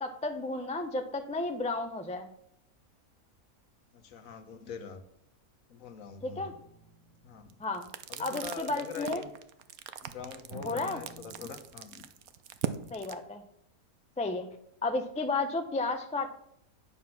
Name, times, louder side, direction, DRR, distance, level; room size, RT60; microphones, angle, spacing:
voice 1, 0.0-2.3 6.2-6.5 7.6-7.9 8.2-9.2 10.6-11.0 12.9-13.4 14.2-14.5 14.8-16.3, left 3 dB, 10° left, 6 dB, 0.4 m, -32 dB
voice 2, 3.9-5.0 5.7-6.6 7.2-7.6 8.1-9.3 10.0-12.1, left 6 dB, 65° left, 8 dB, 1.3 m, -44 dB
sound 1, 6.2-8.0 10.5-11.5, right 2 dB, 50° right, 5.1 m, -50 dB
sound 2, 7.4-13.1, right 10 dB, 75° right, 1.1 m, -40 dB
9.4 x 7.2 x 5.9 m, 0.76 s
omnidirectional pair, 1.6 m